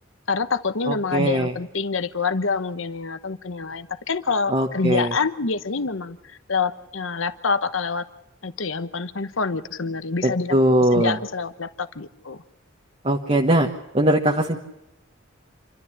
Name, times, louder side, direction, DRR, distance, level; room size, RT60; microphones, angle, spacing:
voice 1, 0.3-6.2 6.5-8.1 8.4-12.4, left 4 dB, 85° left, 11 dB, 1.1 m, -26 dB
voice 2, 0.9-1.5 4.5-5.1 10.2-11.2 13.0-13.7 13.9-14.6, right 1 dB, 30° right, 1 dB, 1.3 m, -20 dB
28.0 x 13.0 x 8.5 m, 0.93 s
head